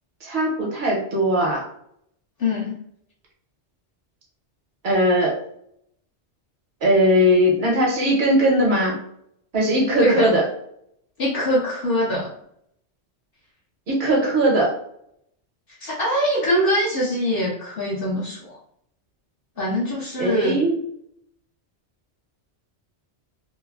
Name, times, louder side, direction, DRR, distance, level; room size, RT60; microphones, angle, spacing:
voice 1, 0.2-1.6 4.8-5.4 6.8-9.0 9.5-10.4 13.9-14.7 20.2-20.8, equal, 65° right, -3 dB, 1.1 m, -19 dB
voice 2, 2.4-2.7 10.0-10.3 11.2-12.3 15.8-18.6 19.6-20.6, left 1 dB, 60° left, -5 dB, 0.7 m, -23 dB
3.0 x 2.0 x 2.3 m, 0.71 s
omnidirectional pair, 1.2 m